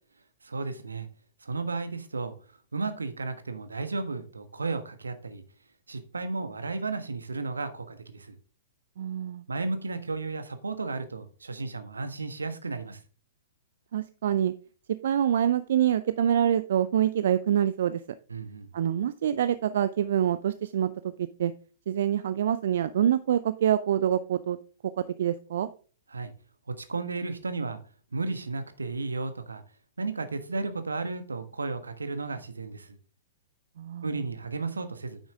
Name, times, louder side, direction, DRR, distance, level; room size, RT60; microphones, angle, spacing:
voice 1, 0.4-1.1 1.4-2.3 2.7-5.4 5.9-8.4 9.5-13.0 18.3-18.7 26.1-26.3 26.8-27.8 28.1-29.6 30.0-33.0 34.0-35.2, right 3 dB, 75° right, 1.4 m, -33 dB
voice 2, 9.0-9.4 13.9-14.5 15.0-18.0 18.7-21.5 21.9-24.6 25.0-25.7 33.8-34.1, right 10 dB, 55° right, 0.5 m, -26 dB
9.5 x 7.1 x 3.6 m
figure-of-eight pair, 110°, 0 cm